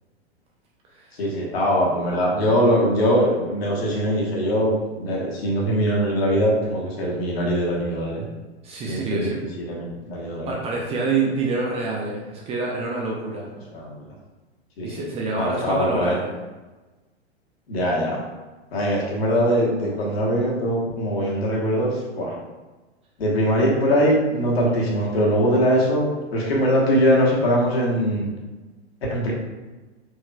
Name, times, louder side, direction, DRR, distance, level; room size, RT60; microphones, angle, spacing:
voice 1, 1.2-8.2 8.8-9.4 9.7-10.5 13.7-14.1 14.8-15.1 15.3-16.2 17.7-18.2 18.7-22.4 23.2-28.3 29.1-29.3, equal, 65° left, -3 dB, 1.3 m, -22 dB
voice 2, 8.6-9.4 10.5-13.5 14.8-16.3, right 3 dB, 20° right, -2 dB, 0.5 m, -27 dB
4.4 x 2.9 x 2.3 m, 1.2 s
figure-of-eight pair, 100°, 33 cm